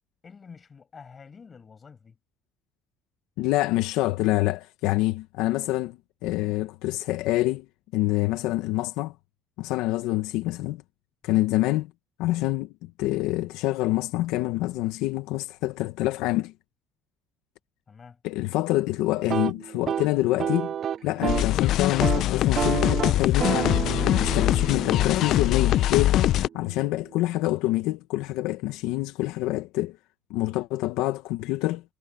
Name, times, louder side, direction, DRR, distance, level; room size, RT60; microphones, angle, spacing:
voice 1, 0.2-2.2 11.2-11.4 17.9-18.2, left 5 dB, 30° left, 5.7 m, -48 dB
voice 2, 3.4-7.7 7.9-9.1 9.6-10.8 11.2-11.9 12.2-16.5 18.2-20.7 21.0-23.8 24.2-26.2 26.5-30.0 30.3-31.8, left 17 dB, 85° left, 0.9 m, -26 dB
sound 1, 19.2-21.5 21.9-22.2 22.5-26.4, right 9 dB, 50° right, 0.3 m, -30 dB
sound 2, 21.3-26.5, left 13 dB, 65° left, 0.4 m, -23 dB
cardioid pair, 105°, 0 cm